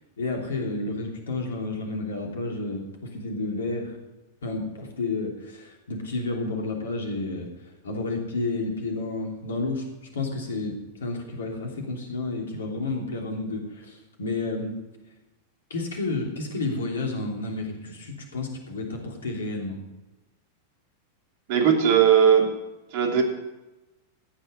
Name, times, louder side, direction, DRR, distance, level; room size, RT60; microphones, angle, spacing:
voice 1, 0.2-4.0 4.4-7.5 7.8-10.7 11.0-14.7 15.7-19.8, left 3 dB, 65° left, 1 dB, 3.1 m, -31 dB
voice 2, 21.5-22.5 22.9-23.2, right 8 dB, 50° right, 2 dB, 2.9 m, -18 dB
15.0 x 9.4 x 5.4 m, 1.0 s
figure-of-eight pair, 90°, 0 cm